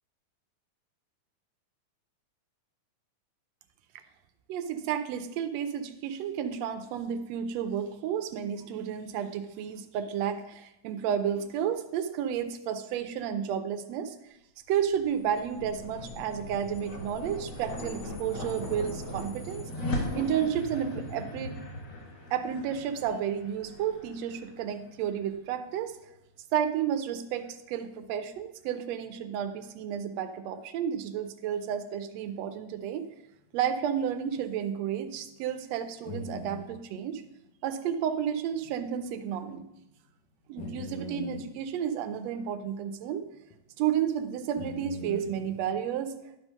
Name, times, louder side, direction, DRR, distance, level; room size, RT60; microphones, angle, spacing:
voice 1, 4.5-14.1 14.7-19.6 20.1-21.5 22.3-26.0 26.5-33.1 33.5-37.2 37.6-39.6 40.5-43.2 43.8-46.1, right 9 dB, 80° right, 9 dB, 1.6 m, -31 dB
sound 1, 14.9-25.4, left 1 dB, 45° left, 2.7 m, -39 dB
sound 2, 34.4-34.5 34.9-35.0 36.1-36.7 38.6-38.7 39.0-39.1 40.6-41.4 43.5-43.6 44.6-45.7, left 2 dB, 90° left, 2.6 m, -40 dB
11.5 x 5.4 x 5.4 m, 0.89 s
omnidirectional pair, 3.4 m